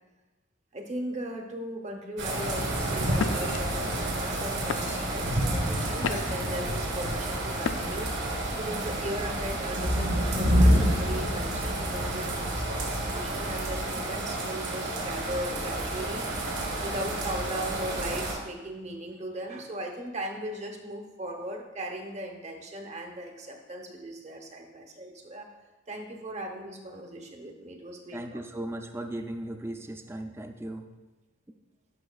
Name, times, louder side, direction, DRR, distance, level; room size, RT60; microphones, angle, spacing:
voice 1, 0.7-8.1 8.6-25.5 25.9-28.4, right 1 dB, 35° right, 3 dB, 0.9 m, -38 dB
sound 1, 2.2-18.3, right 1 dB, 70° right, 2.4 m, -28 dB
sound 2, 3.2-3.6 4.2-4.4 4.7-5.2 5.7-6.5 7.6-8.1, left 6 dB, 65° left, 0.3 m, -33 dB
voice 2, 28.1-30.9, right 1 dB, 10° right, 5 dB, 0.4 m, -37 dB
11.5 x 5.8 x 2.3 m, 1.2 s
head